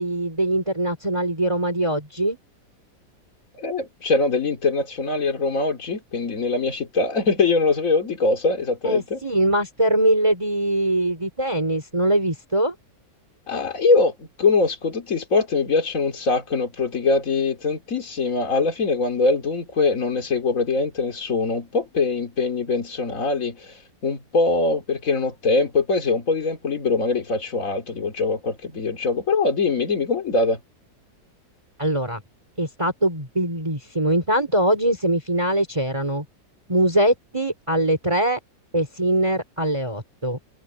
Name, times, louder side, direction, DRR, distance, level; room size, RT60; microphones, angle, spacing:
voice 1, 0.0-2.4 8.8-12.7 31.8-32.2 32.6-36.3 36.7-38.4 38.7-40.4, right 1 dB, 15° right, 4.0 m, -22 dB
voice 2, 3.6-9.2 13.5-23.8 24.0-30.6, left 3 dB, 45° left, 3.1 m, -22 dB
omnidirectional pair, 2.0 m